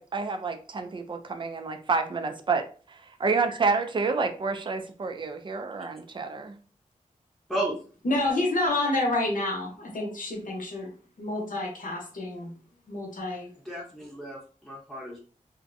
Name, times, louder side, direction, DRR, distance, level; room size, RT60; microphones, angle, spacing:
voice 1, 0.0-6.6, right 4 dB, 35° right, 7 dB, 0.4 m, -29 dB
voice 2, 8.0-10.9 11.2-12.5 12.9-13.5, left 2 dB, 70° left, 0 dB, 0.8 m, -28 dB
voice 3, 13.6-15.2, right 1 dB, ahead, -4 dB, 0.8 m, -33 dB
2.5 x 2.1 x 2.5 m, 0.39 s
wide cardioid pair, 75°, 14 cm